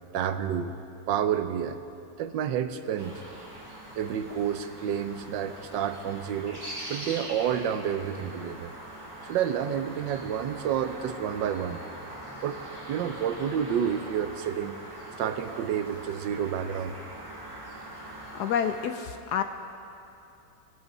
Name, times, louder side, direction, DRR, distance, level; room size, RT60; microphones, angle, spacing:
voice 1, 0.1-0.8 1.1-1.8 2.2-3.2 3.9-6.6 6.9-8.7 9.2-11.8 12.4-12.6 12.9-14.8 15.2-17.0, right 8 dB, 75° right, 10 dB, 1.2 m, -29 dB
sound 1, 3.0-18.9, right 1 dB, 15° right, 2.3 m, -42 dB
voice 2, 18.3-19.4, left 8 dB, 70° left, 8 dB, 1.0 m, -28 dB
21.5 x 8.0 x 5.4 m, 2.7 s
omnidirectional pair, 2.1 m